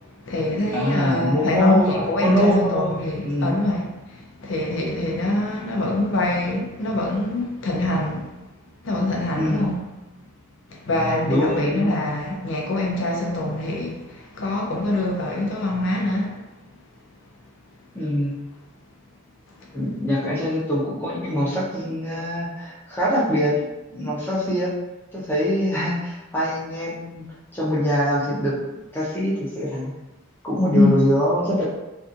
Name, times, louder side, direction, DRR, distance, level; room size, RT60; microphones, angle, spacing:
voice 1, 0.2-8.3 8.8-9.9 10.7-16.4 30.7-30.9, left 1 dB, 60° left, 0.4 m, -24 dB
voice 2, 0.7-3.0 3.2-3.5 9.3-9.7 11.2-12.1 17.9-18.4 19.7-23.6 23.9-24.7 25.1-27.2 27.5-28.6 28.9-29.9 30.4-31.7, equal, 10° left, 0.6 m, -23 dB
2.6 x 2.4 x 2.5 m
head